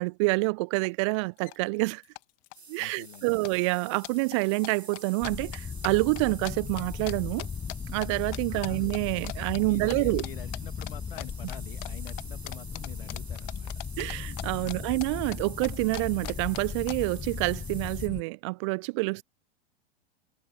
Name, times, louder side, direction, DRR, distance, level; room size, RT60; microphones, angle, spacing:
voice 1, 0.0-2.0 2.7-7.5 7.9-10.2 14.0-19.2, right 27 dB, 30° right, 0.4 m, -27 dB
sound 1, 0.8-0.9 1.1-1.6 1.8-2.6 2.8-3.2 3.4-8.1 8.3-9.0 9.2-9.6 9.9-10.3 10.5-14.8 15.0-16.9, left 24 dB, 45° left, 1.8 m, -41 dB
sound 2, 2.5-18.1, right 4 dB, 85° right, 1.2 m, -49 dB
voice 2, 2.8-3.3 8.5-8.9 9.7-13.7 14.6-15.0, left 11 dB, 60° left, 2.1 m, -46 dB
sound 3, 5.2-18.2, left 6 dB, 15° left, 1.3 m, -37 dB
figure-of-eight pair, 95°, 31 cm